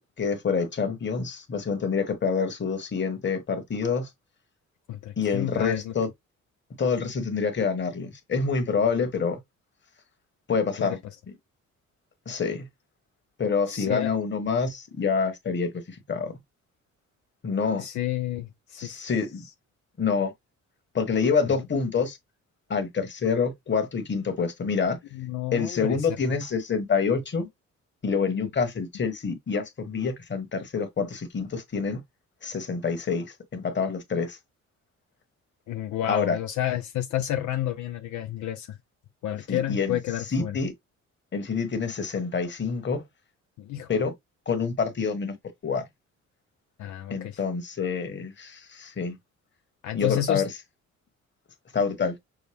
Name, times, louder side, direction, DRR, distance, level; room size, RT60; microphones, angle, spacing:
voice 1, 0.0-4.1 5.2-6.1 6.8-9.4 10.5-11.0 12.2-12.7 13.4-16.3 17.4-17.8 18.8-19.4 20.0-20.3 20.9-22.2 22.7-25.0 25.5-27.5 28.0-32.0 32.4-34.4 36.1-36.4 39.5-40.0 40.3-40.7 41.3-43.0 43.9-44.1 44.5-45.3 45.6-45.8 47.1-49.2 49.9-50.5 51.7-52.2, left 5 dB, 35° left, 1.5 m, -27 dB
voice 2, 4.9-5.9 10.8-11.0 13.7-14.1 17.8-19.1 21.4-21.5 25.1-26.1 28.2-28.5 35.7-38.8 39.2-40.6 43.6-44.0 46.8-47.4 49.8-50.4, left 12 dB, 75° left, 0.7 m, -30 dB
6.3 x 2.2 x 3.5 m
cardioid pair, 90°, 30 cm